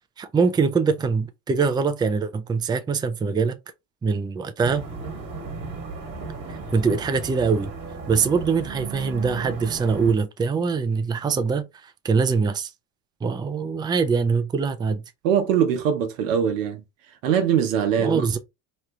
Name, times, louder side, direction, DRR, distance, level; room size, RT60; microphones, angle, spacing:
voice 1, 0.2-3.6 4.0-4.8 6.5-7.7 8.1-12.7 13.2-15.0 18.0-18.4, right 5 dB, 10° right, 0.4 m, -23 dB
sound 1, 4.6-10.1, right 4 dB, 40° right, 1.4 m, -35 dB
voice 2, 15.2-16.8 17.2-18.4, right 8 dB, 85° right, 0.9 m, -22 dB
3.1 x 2.3 x 3.0 m
hypercardioid pair, 80°, 38 cm